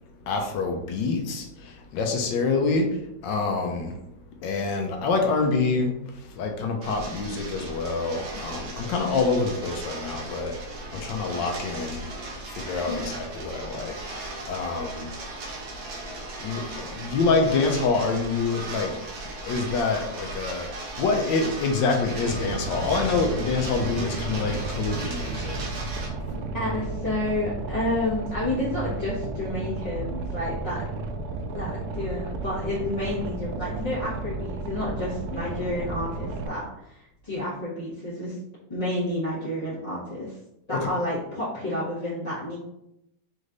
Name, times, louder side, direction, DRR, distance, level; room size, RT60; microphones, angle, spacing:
voice 1, 0.3-4.0 4.4-10.6 10.9-12.1 12.5-15.1 16.2-19.0 19.4-25.6 40.7-40.9, left 4 dB, 75° left, 3 dB, 1.3 m, -26 dB
sound 1, 6.8-26.1, right 2 dB, 90° right, 1.7 m, -37 dB
Boat Water vehicle, 22.2-36.5, right 3 dB, 75° right, 0.9 m, -33 dB
voice 2, 26.6-30.8 31.5-38.3 38.7-40.4 40.7-42.6, left 1 dB, 25° left, -12 dB, 1.3 m, -30 dB
5.3 x 3.2 x 2.5 m, 0.84 s
omnidirectional pair, 2.1 m